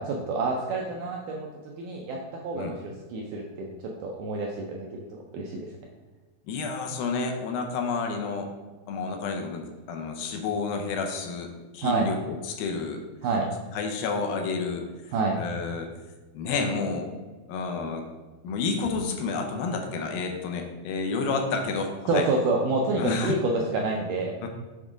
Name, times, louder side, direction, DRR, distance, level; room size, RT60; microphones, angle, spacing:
voice 1, 0.0-1.5 1.8-5.7 11.8-12.1 13.2-13.5 15.1-15.4 22.1-24.4, right 3 dB, 80° right, 0 dB, 1.9 m, -28 dB
voice 2, 6.5-8.5 8.9-13.0 13.8-14.9 15.4-15.9 16.3-17.1 17.5-18.1 18.4-22.3 23.0-23.4 24.4-24.5, left 4 dB, 80° left, 4 dB, 2.4 m, -30 dB
7.4 x 3.6 x 4.9 m, 1.3 s
omnidirectional pair, 4.4 m